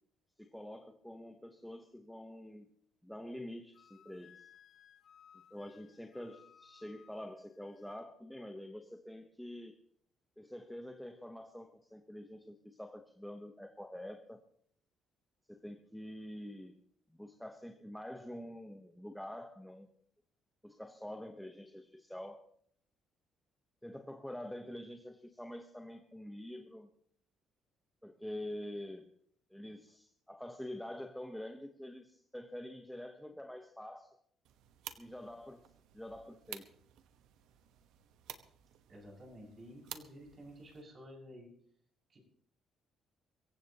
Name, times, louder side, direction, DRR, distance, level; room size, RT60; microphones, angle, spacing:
voice 1, 0.4-2.8 3.0-4.5 5.5-9.8 10.4-14.4 15.5-16.7 17.1-19.9 20.6-22.5 23.8-26.9 28.0-29.1 29.5-34.2 35.0-35.7 35.9-36.7, left 1 dB, 5° left, 5 dB, 1.0 m, -46 dB
Wind instrument woodwind instrument, 3.7-8.0, left 8 dB, 55° left, 0.8 m, -62 dB
sound 1, 34.4-40.8, right 11 dB, 85° right, 1.1 m, -52 dB
voice 2, 38.9-41.5 42.1-42.2, equal, 35° right, -2 dB, 6.6 m, -52 dB
24.0 x 15.5 x 3.0 m, 0.62 s
cardioid pair, 125°, 0 cm